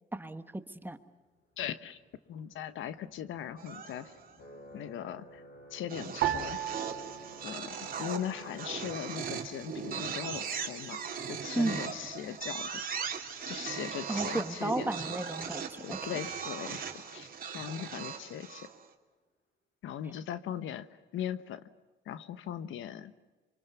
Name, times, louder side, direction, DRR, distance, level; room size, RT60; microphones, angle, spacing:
voice 1, 0.1-1.0 11.5-11.8 14.1-16.1, right 2 dB, 10° right, 9 dB, 1.6 m, -34 dB
voice 2, 1.6-2.0 2.3-4.1 4.7-5.4 5.7-6.6 7.4-11.0 11.3-12.8 13.5-14.9 15.8-17.3 17.5-18.7 19.8-20.9 21.1-21.6 22.0-23.1, left 10 dB, 80° left, 13 dB, 1.2 m, -39 dB
sound 1, 1.6-17.8, equal, 55° left, 6.8 m, -55 dB
sound 2, 3.6-4.3 5.9-18.9, right 6 dB, 45° right, 2.8 m, -39 dB
sound 3, 6.2-8.7 9.0-9.9 10.5-10.9, right 12 dB, 85° right, 2.1 m, -37 dB
26.5 x 24.5 x 7.0 m, 1.2 s
cardioid pair, 90°, 20 cm